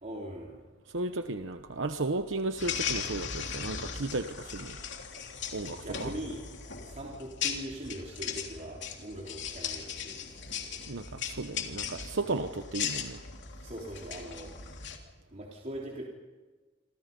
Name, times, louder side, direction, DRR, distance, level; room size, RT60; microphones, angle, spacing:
voice 1, 0.0-0.7 5.7-6.4 6.8-10.2 13.6-14.5 15.3-16.0, right 1 dB, 40° right, -2 dB, 3.4 m, -41 dB
voice 2, 0.9-4.8 5.5-6.1 10.9-13.2, right 2 dB, 75° right, 8 dB, 1.0 m, -34 dB
sound 1, 2.6-15.0, left 7 dB, 65° left, 3.3 m, -38 dB
28.0 x 27.0 x 5.4 m, 1.3 s
head